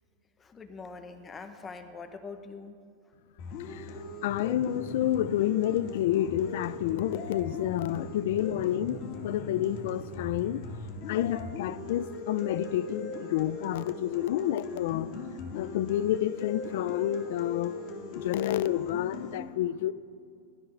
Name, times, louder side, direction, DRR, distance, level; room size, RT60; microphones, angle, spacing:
voice 1, 0.4-2.8, left 4 dB, 10° left, 0.8 m, -43 dB
sound 1, 3.4-19.4, left 3 dB, 35° left, 1.8 m, -39 dB
voice 2, 4.2-10.6 11.1-15.1 15.5-17.8 18.1-19.9, left 12 dB, 55° left, 0.4 m, -29 dB
16.0 x 12.0 x 5.9 m
supercardioid pair, 175°, 0 cm